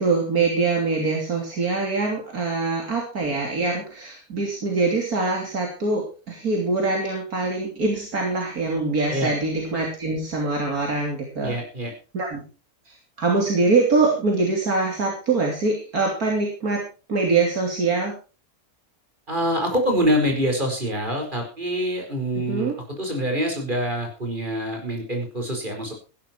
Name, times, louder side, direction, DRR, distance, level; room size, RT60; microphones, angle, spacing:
voice 1, 0.0-11.6 12.1-12.4 12.9-18.1 22.4-22.7, right 3 dB, 75° right, 0 dB, 3.5 m, -24 dB
voice 2, 11.4-11.9 19.3-25.9, equal, 30° right, 3 dB, 5.0 m, -25 dB
15.5 x 12.0 x 4.5 m, 0.35 s
omnidirectional pair, 1.6 m